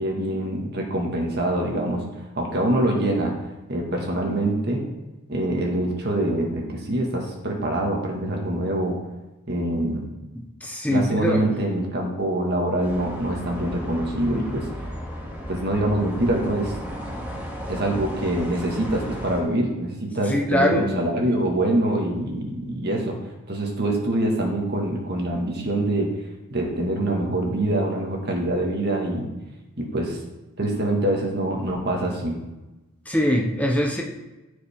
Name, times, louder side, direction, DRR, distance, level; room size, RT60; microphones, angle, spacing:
voice 1, 0.0-2.0 2.4-3.3 3.7-4.8 5.3-9.0 9.5-10.0 10.9-14.7 15.5-16.7 17.7-23.2 23.5-26.1 26.5-29.3 29.8-30.2 30.6-32.4, right 1 dB, 50° right, 0 dB, 1.7 m, -24 dB
voice 2, 10.3-11.4 20.3-20.9 33.1-34.0, equal, 5° left, 1 dB, 0.8 m, -22 dB
sound 1, 12.8-19.4, equal, 10° right, 2.1 m, -34 dB
14.5 x 5.2 x 3.6 m, 1.1 s
head